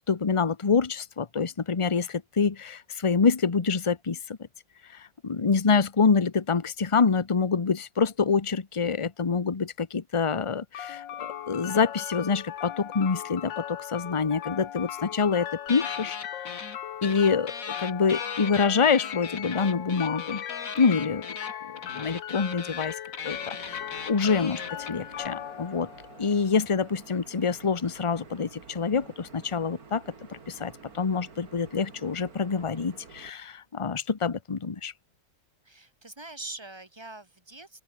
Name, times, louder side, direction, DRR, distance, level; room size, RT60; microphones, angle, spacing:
voice 1, 0.1-4.4 4.9-16.2 17.0-17.5 17.8-20.4 20.8-21.2 21.9-25.9 26.2-34.9, left 5 dB, 25° left, 0.7 m, -26 dB
sound 1, 10.7-26.8, left 10 dB, 75° left, 1.8 m, -38 dB
sound 2, 15.7-16.8 17.0-25.3, left 5 dB, 45° left, 2.3 m, -39 dB
sound 3, 23.3-33.3, right 5 dB, 50° right, 2.9 m, -50 dB
voice 2, 35.6-37.8, right 2 dB, 15° right, 2.4 m, -43 dB
open air
omnidirectional pair, 2.0 m